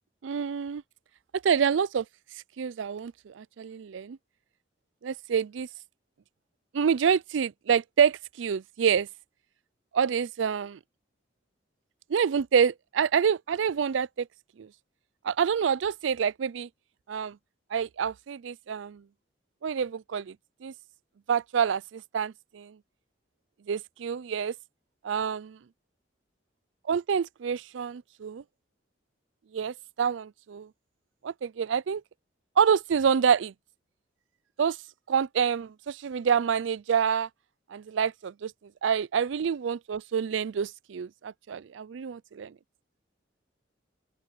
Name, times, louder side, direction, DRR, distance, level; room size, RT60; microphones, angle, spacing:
voice 1, 0.2-0.8 1.4-2.0 2.6-4.2 5.0-5.7 6.7-9.1 9.9-10.8 12.1-14.3 14.6-14.7 15.2-16.7 17.1-17.4 17.7-19.0 19.6-20.3 20.6-20.7 21.3-22.7 23.7-24.5 25.0-25.6 26.9-28.4 29.5-30.7 31.2-32.0 32.6-33.5 34.6-34.8 35.1-37.3 37.7-38.5 38.8-42.5, right 7 dB, 90° right, 0.4 m, -27 dB
open air
head